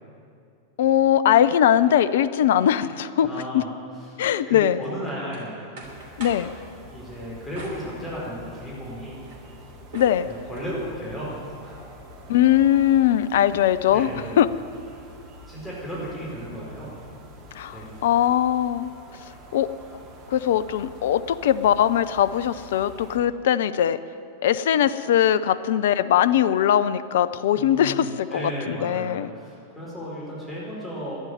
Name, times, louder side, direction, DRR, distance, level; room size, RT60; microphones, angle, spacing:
voice 1, 0.8-3.3 3.5-3.6 4.2-4.8 6.2-6.5 9.9-10.3 12.3-14.1 14.4-14.5 17.5-18.9 19.5-19.7 20.3-24.0 24.4-29.3, left 10 dB, 55° left, 15 dB, 0.5 m, -20 dB
voice 2, 3.2-3.7 3.9-4.2 4.5-5.6 6.9-9.2 10.3-11.8 13.8-14.4 14.9-15.0 15.5-16.9 17.7-18.0 27.5-31.2, equal, 10° left, -7 dB, 4.7 m, -35 dB
sound 1, 4.8-6.5 7.5-8.6 9.0-10.7, right 2 dB, 55° right, 3.0 m, -44 dB
sound 2, 5.8-23.2, equal, 35° right, 2.1 m, -46 dB
11.5 x 10.5 x 9.7 m, 2.5 s
figure-of-eight pair, 90°, 0 cm